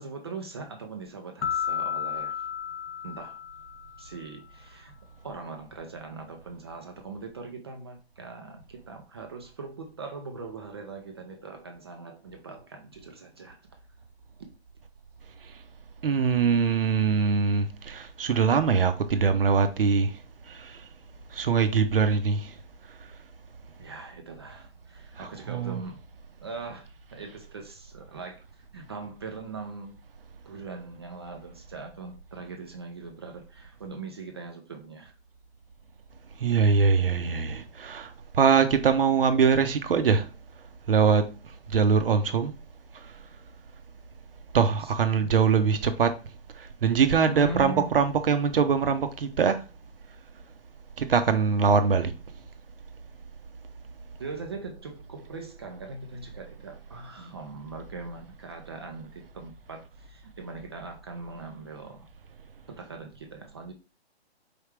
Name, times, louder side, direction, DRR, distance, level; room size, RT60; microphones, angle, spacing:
voice 1, 0.0-2.4 3.0-3.4 4.0-5.0 5.2-13.6 23.8-26.0 26.4-28.4 28.7-30.0 30.5-35.1 44.5-45.4 47.3-48.0 54.2-62.1 62.7-63.7, right 4 dB, 25° right, 0.4 m, -41 dB
sound 1, 1.4-4.2, left 8 dB, 80° left, 0.5 m, -32 dB
voice 2, 16.0-20.2 20.5-20.9 21.3-22.5 25.2-25.9 36.4-40.3 40.9-41.3 41.7-42.5 43.0-43.1 44.5-46.2 46.6-49.6 51.0-52.1, right 5 dB, 55° right, 0.7 m, -23 dB
4.6 x 3.4 x 3.2 m
hypercardioid pair, 145°, 33 cm